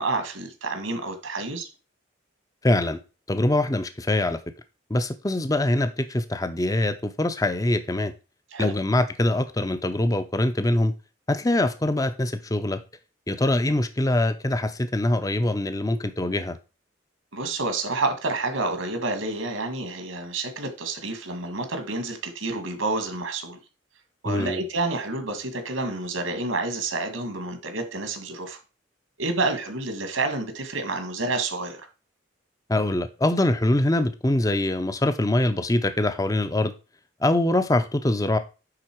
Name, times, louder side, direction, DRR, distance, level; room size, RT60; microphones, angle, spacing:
voice 1, 0.0-1.7 8.5-8.7 17.3-23.6 24.2-28.6 29.2-31.8, right 3 dB, 85° right, 1.9 m, -29 dB
voice 2, 2.6-3.0 3.3-4.4 4.9-8.1 8.6-10.9 11.3-12.8 13.3-16.6 24.2-24.6 32.7-36.7 37.2-38.4, left 1 dB, 15° left, 0.6 m, -23 dB
9.8 x 4.0 x 4.6 m
head